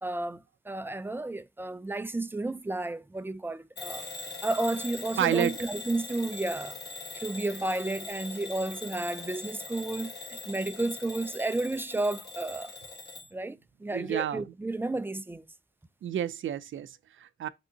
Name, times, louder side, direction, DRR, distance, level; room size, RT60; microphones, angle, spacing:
voice 1, 0.0-4.1 4.4-6.8 7.1-12.7 13.3-15.4, right 2 dB, 10° right, 0.3 m, -32 dB
Bell / Alarm, 3.8-13.3, left 3 dB, 60° left, 1.2 m, -42 dB
voice 2, 5.2-5.5 13.9-14.4 16.0-17.5, right 10 dB, 80° right, 0.4 m, -30 dB
5.3 x 3.5 x 2.8 m
wide cardioid pair, 115°, 20 cm